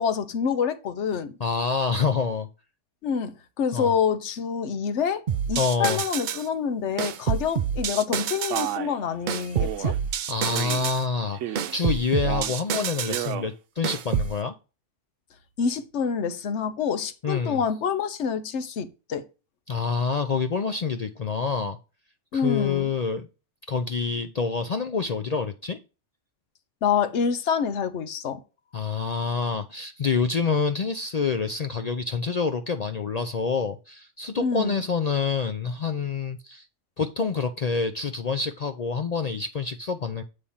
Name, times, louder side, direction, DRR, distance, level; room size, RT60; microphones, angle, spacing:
voice 1, 0.0-1.3 3.0-5.2 5.5-10.0 15.6-19.3 22.3-22.9 26.8-28.4 34.4-34.8, left 6 dB, 70° left, 1.1 m, -27 dB
voice 2, 1.4-2.5 3.7-3.9 5.6-6.0 10.3-14.5 17.2-17.6 19.7-21.8 22.3-23.3 23.7-25.8 28.7-36.7 37.0-40.2, left 5 dB, 55° left, 0.4 m, -27 dB
sound 1, 5.3-6.5 7.0-8.7 9.3-11.0 11.6-13.3 13.8-14.4, right 8 dB, 55° right, 0.5 m, -28 dB
Male speech man speaking, 8.5-9.0 9.6-10.0 10.5-10.9 11.3-11.8 12.2-12.6 13.0-13.5, right 11 dB, 80° right, 0.9 m, -32 dB
8.5 x 3.3 x 5.5 m
omnidirectional pair, 1.2 m